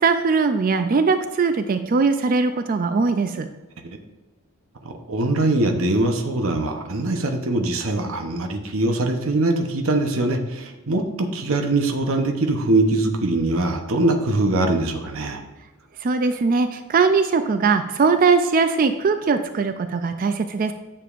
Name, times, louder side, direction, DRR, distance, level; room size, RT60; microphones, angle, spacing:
voice 1, 0.0-3.5 16.0-20.7, right 4 dB, 40° right, 9 dB, 0.3 m, -20 dB
voice 2, 4.8-15.4, right 2 dB, 65° right, 4 dB, 0.8 m, -22 dB
9.9 x 6.8 x 2.5 m, 1.1 s
head